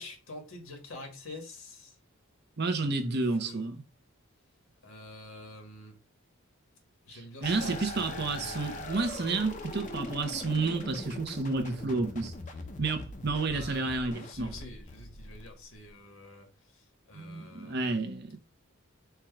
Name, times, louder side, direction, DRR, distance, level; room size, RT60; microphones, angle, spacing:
voice 1, 0.0-1.9 2.8-3.6 4.8-6.0 7.0-9.2 13.5-16.8 17.1-18.0, left 2 dB, 80° left, 1.5 m, -47 dB
voice 2, 2.6-3.8 7.1-12.3 12.8-14.5 17.1-18.4, right 3 dB, 55° right, 0.8 m, -31 dB
sound 1, 7.4-15.9, left 2 dB, 40° left, 0.7 m, -41 dB
4.6 x 2.4 x 4.5 m
head